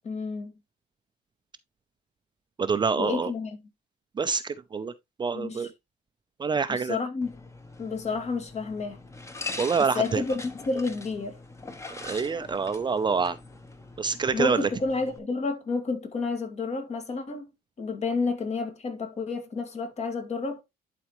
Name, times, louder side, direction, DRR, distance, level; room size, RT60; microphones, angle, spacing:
voice 1, 0.0-0.5 3.0-3.6 5.3-5.7 6.7-7.4 7.8-9.0 9.9-11.4 14.3-17.5 17.8-20.6, left 4 dB, 40° left, 2.2 m, -30 dB
voice 2, 2.6-3.3 4.2-4.9 5.2-5.7 6.4-7.0 9.6-10.2 12.0-13.4 14.0-14.7, right 5 dB, 25° right, 0.6 m, -26 dB
sound 1, 7.2-15.2, left 3 dB, 15° left, 1.3 m, -42 dB
11.5 x 4.3 x 3.1 m
cardioid pair, 110°, 17 cm